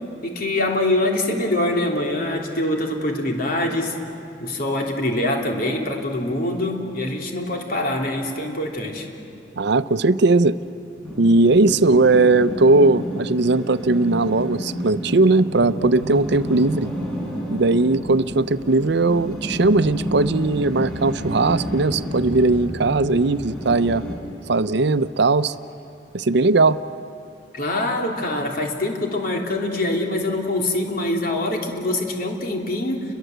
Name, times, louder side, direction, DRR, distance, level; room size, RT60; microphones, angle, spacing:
voice 1, 0.2-4.0 4.4-9.1 27.5-33.0, left 1 dB, 50° left, 1 dB, 3.3 m, -24 dB
voice 2, 9.6-10.6 11.2-16.9 17.5-24.0 24.5-25.5 26.1-26.8, right 3 dB, 65° right, 13 dB, 0.7 m, -18 dB
sound 1, 11.0-24.1, equal, 5° left, 5.2 m, -30 dB
29.5 x 22.5 x 8.0 m, 2.6 s
head